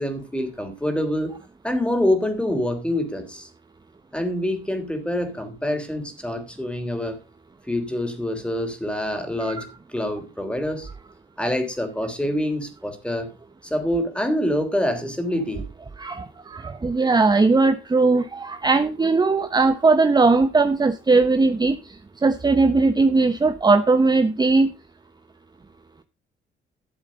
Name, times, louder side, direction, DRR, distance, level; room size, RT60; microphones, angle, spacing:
voice 1, 0.0-1.4 1.6-3.5 4.1-7.2 7.7-10.9 11.4-13.3 13.6-15.7, left 1 dB, 5° left, 6 dB, 3.5 m, -26 dB
voice 2, 16.0-21.7 22.2-24.7, right 3 dB, 20° right, 10 dB, 0.9 m, -19 dB
13.0 x 7.2 x 5.2 m, 0.31 s
cardioid pair, 90°, 20 cm